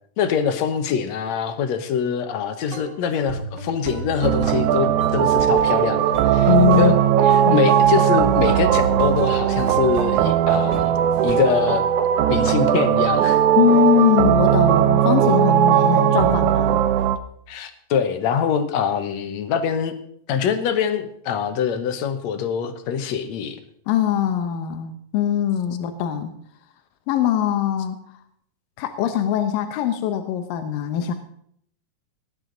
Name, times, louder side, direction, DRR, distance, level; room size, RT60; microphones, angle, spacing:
voice 1, 0.2-6.5 6.8-7.0 7.2-11.0 11.2-11.8 12.3-13.4 17.5-19.9 20.3-23.6, left 7 dB, 65° left, 9 dB, 2.0 m, -24 dB
sound 1, 2.7-3.0 3.3-7.0 7.3-8.0 8.4-11.6, right 3 dB, 50° right, 1.4 m, -34 dB
sound 2, 4.2-17.2, right 10 dB, 75° right, 1.9 m, -18 dB
voice 2, 6.5-7.0 7.5-7.6 13.6-16.8 23.9-26.3 27.1-28.0 28.8-31.1, left 9 dB, 85° left, 7 dB, 2.6 m, -21 dB
19.0 x 11.0 x 3.9 m, 0.67 s
omnidirectional pair, 3.9 m